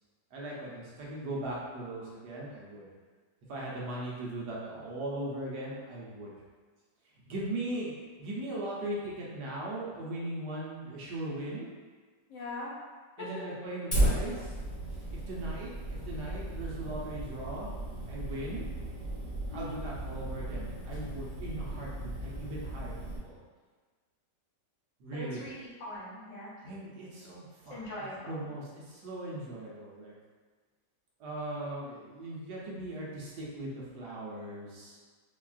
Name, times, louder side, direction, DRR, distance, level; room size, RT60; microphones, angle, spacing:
voice 1, 0.3-2.9 3.5-6.3 7.3-7.9 8.2-11.7 13.2-14.6 15.1-17.7 18.1-18.6 19.5-23.4 25.0-25.5 26.6-30.1 31.2-35.0, right 1 dB, 70° right, -5 dB, 1.2 m, -39 dB
voice 2, 12.3-12.7 13.2-13.3 19.5-19.8 25.1-26.5 27.7-28.4, left 2 dB, 80° left, -5 dB, 1.5 m, -41 dB
Fire, 13.9-23.2, right 1 dB, 25° left, 0.9 m, -35 dB
4.3 x 2.3 x 2.4 m, 1.5 s
omnidirectional pair, 1.9 m